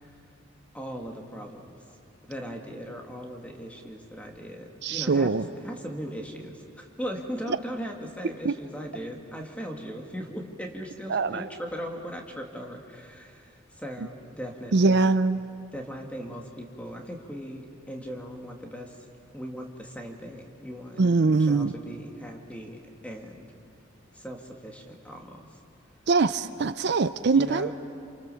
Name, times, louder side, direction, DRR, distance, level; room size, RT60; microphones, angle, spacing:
voice 1, 0.7-1.8 2.2-5.3 5.6-15.1 15.7-19.0 19.3-23.5 24.1-25.5 27.3-27.7, equal, 5° left, 1 dB, 2.5 m, -38 dB
voice 2, 4.8-5.4 7.5-7.6 8.4-8.5 11.1-11.4 14.7-15.4 21.0-21.8 26.1-27.7, right 3 dB, 55° right, 12 dB, 0.5 m, -22 dB
29.0 x 27.5 x 7.1 m, 2.6 s
head